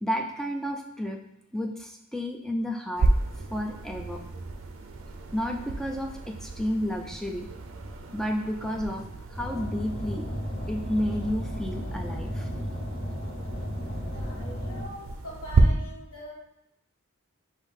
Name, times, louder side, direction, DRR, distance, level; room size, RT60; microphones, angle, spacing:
voice 1, 0.0-1.2 1.5-3.1 3.5-4.2 5.3-7.5 8.1-9.0 9.3-10.3 10.7-12.5, equal, ahead, 2 dB, 0.3 m, -31 dB
sound 1, 3.0-15.6, right 3 dB, 65° right, 0.5 m, -32 dB
Car, 9.3-14.8, equal, 30° left, 1.2 m, -34 dB
voice 2, 14.0-16.3, equal, 85° left, -4 dB, 1.6 m, -43 dB
5.3 x 2.7 x 3.6 m, 0.82 s
head